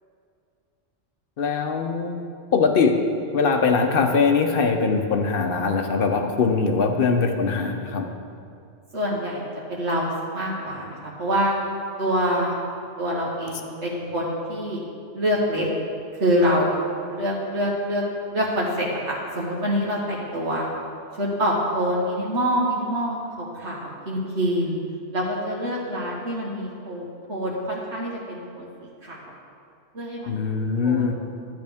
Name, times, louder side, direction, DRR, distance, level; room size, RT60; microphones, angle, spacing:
voice 1, 1.4-2.1 2.5-3.0 3.3-8.1 30.3-31.1, left 5 dB, 55° left, 4 dB, 0.9 m, -21 dB
voice 2, 8.9-9.4 9.7-11.6 12.0-12.6 13.0-14.8 15.1-15.7 16.2-16.7 17.1-18.0 18.3-20.7 21.2-24.8 25.1-28.7 29.0-29.3 29.9-31.1, equal, 70° right, -5 dB, 1.7 m, -26 dB
12.0 x 8.3 x 3.5 m, 2.4 s
omnidirectional pair, 1.2 m